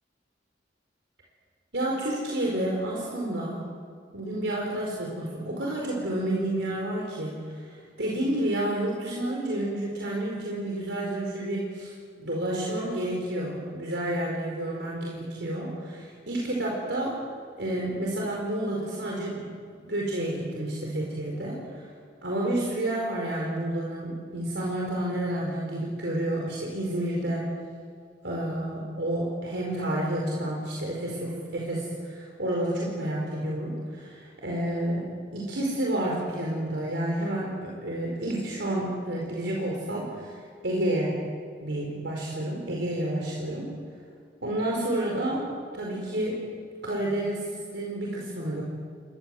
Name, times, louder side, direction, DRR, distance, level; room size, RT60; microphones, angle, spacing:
voice 1, 1.7-3.6 4.1-11.9 12.2-17.2 17.6-19.5 19.8-21.9 22.2-27.5 28.2-35.0 35.3-40.4 40.6-41.2 41.6-43.7 44.4-45.5 45.7-46.4 46.8-48.6, right 1 dB, 70° right, -2 dB, 4.9 m, -30 dB
30.0 x 23.5 x 7.8 m, 2.2 s
head